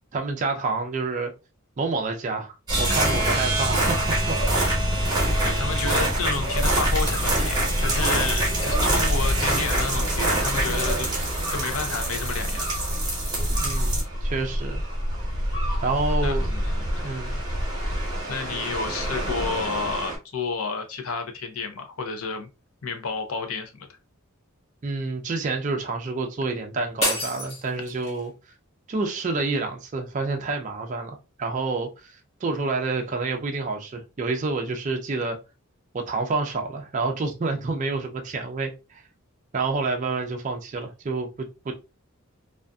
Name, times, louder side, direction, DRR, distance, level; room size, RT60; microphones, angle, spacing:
voice 1, 0.1-1.3 1.8-4.0 4.3-4.4 13.6-14.8 15.8-16.5 17.0-17.4 24.8-28.3 28.9-35.4 35.9-39.0 39.5-41.7, right 3 dB, 35° right, 0.4 m, -28 dB
sound 1, 2.7-20.2, right 1 dB, 20° right, 0.9 m, -25 dB
voice 2, 5.4-11.1 11.5-12.7 16.2-17.4 18.3-22.5 22.8-23.9, left 4 dB, 75° left, 0.6 m, -31 dB
sound 2, 27.0-28.3, left 1 dB, 25° left, 1.1 m, -28 dB
2.5 x 2.4 x 2.2 m
head